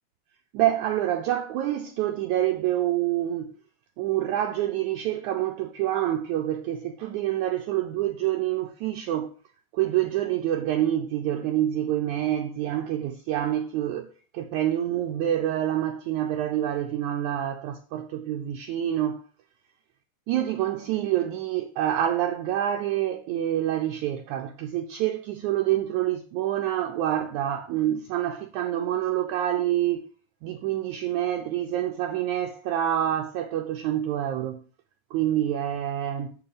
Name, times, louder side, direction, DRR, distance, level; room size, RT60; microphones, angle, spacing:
voice 1, 0.5-3.5 4.0-9.3 9.7-19.2 20.3-30.0 30.4-34.6 35.1-36.4, right 12 dB, 90° right, 1.7 m, -27 dB
7.2 x 7.1 x 5.0 m
omnidirectional pair, 4.1 m